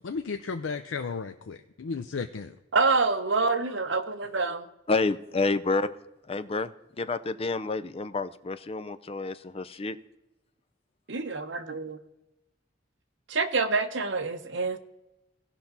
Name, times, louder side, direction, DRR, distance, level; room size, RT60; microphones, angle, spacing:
voice 1, 0.0-2.6, left 5 dB, 90° left, 0.5 m, -34 dB
voice 2, 2.7-4.7 11.1-12.0 13.3-14.8, right 4 dB, 70° right, 0.9 m, -27 dB
voice 3, 4.9-5.9 6.3-6.7 7.0-10.0, left 3 dB, 30° left, 0.5 m, -29 dB
17.0 x 5.8 x 4.0 m
head